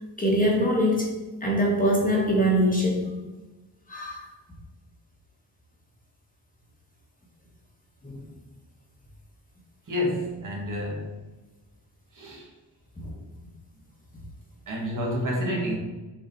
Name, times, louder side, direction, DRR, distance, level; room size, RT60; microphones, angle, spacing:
voice 1, 0.2-1.1 1.4-3.1 3.9-4.3 8.0-8.2, equal, 20° left, -3 dB, 1.2 m, -23 dB
voice 2, 9.9-11.2 12.1-12.5 14.7-15.8, left 1 dB, 50° right, -2 dB, 1.6 m, -29 dB
6.8 x 3.7 x 4.0 m, 1.1 s
wide cardioid pair, 180°, 39 cm